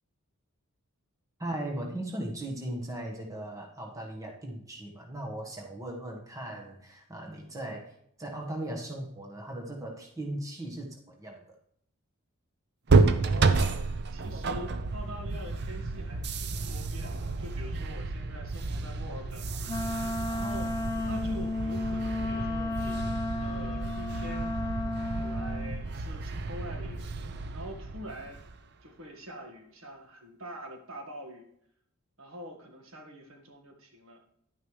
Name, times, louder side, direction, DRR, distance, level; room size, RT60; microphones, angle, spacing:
voice 1, 1.4-11.6, right 1 dB, 15° right, 0 dB, 1.3 m, -38 dB
sound 1, 12.9-28.6, right 3 dB, 50° right, 0.6 m, -30 dB
voice 2, 13.2-20.7 21.0-23.0 23.4-24.6 25.2-27.1 27.5-28.4 28.8-31.4 32.2-34.2, equal, 70° right, 3 dB, 1.6 m, -45 dB
Wind instrument woodwind instrument, 19.7-25.8, left 2 dB, 20° left, 0.5 m, -33 dB
11.0 x 9.1 x 3.2 m, 0.70 s
head